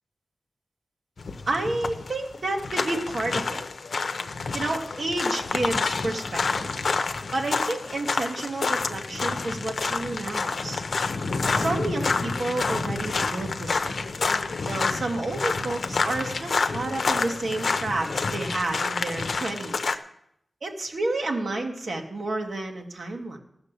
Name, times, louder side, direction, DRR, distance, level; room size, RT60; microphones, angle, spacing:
sound 1, 1.2-19.9, left 4 dB, 75° left, 0.7 m, -28 dB
voice 1, 1.5-3.6 4.5-6.7 7.3-10.8 11.5-14.1 14.7-19.9 20.6-23.4, right 2 dB, 65° right, 3 dB, 1.9 m, -30 dB
15.0 x 7.1 x 6.7 m, 0.75 s
cardioid pair, 60°, 0 cm